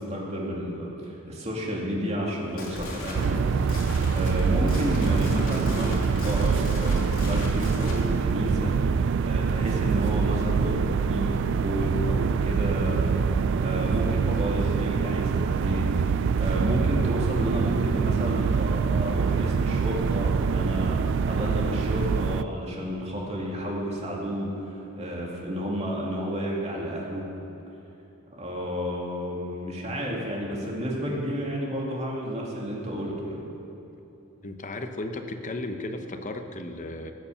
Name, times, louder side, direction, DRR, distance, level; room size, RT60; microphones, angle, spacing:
voice 1, 0.0-3.4 3.7-13.2 13.6-27.2 28.3-33.4, equal, 30° right, -3 dB, 2.4 m, -31 dB
sound 1, 2.3-8.0, left 1 dB, 80° left, 2.8 m, -36 dB
sound 2, 3.1-22.4, right 6 dB, 60° right, 0.3 m, -25 dB
voice 2, 34.4-37.1, left 2 dB, 35° left, 6 dB, 0.9 m, -35 dB
17.0 x 7.1 x 7.0 m, 3.0 s
head